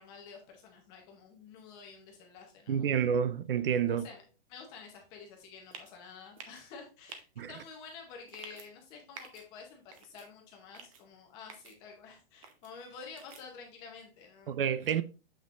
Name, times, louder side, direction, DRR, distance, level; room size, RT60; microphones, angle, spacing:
voice 1, 0.0-3.0 3.9-14.5, left 5 dB, 15° left, 0.7 m, -50 dB
voice 2, 2.7-4.1 7.4-7.5 14.5-15.0, right 8 dB, 65° right, 0.6 m, -29 dB
sound 1, 5.7-5.9 6.4-6.6 7.1-7.2 8.3-8.7 9.1-9.4 9.9-10.3 10.7-11.0 11.5-11.7 12.4-12.7 13.2-13.4, right 5 dB, 35° right, 0.8 m, -49 dB
7.3 x 6.0 x 2.4 m
hypercardioid pair, 180°, 31 cm